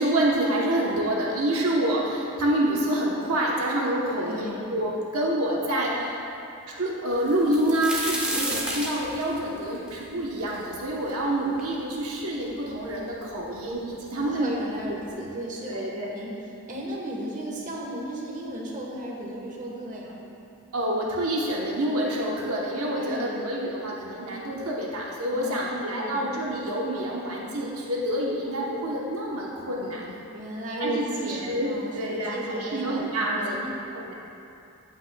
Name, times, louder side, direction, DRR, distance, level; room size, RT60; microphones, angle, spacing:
voice 1, 0.0-6.2 6.8-14.5 14.8-15.0 15.7-16.1 20.7-30.0 30.8-31.7 31.9-33.6 33.9-34.1, right 1 dB, 75° right, -3 dB, 1.0 m, -27 dB
voice 2, 4.1-4.6 14.1-16.4 16.7-20.2 22.9-23.4 25.3-26.2 30.3-33.7, right 1 dB, 35° right, -3 dB, 1.3 m, -34 dB
sound 1, 7.3-11.1 11.6-11.7 12.5-12.6 12.8-13.5 14.4-14.5 14.9-15.1, right 1 dB, 5° right, 1.1 m, -31 dB
16.5 x 5.9 x 2.3 m, 2.7 s
head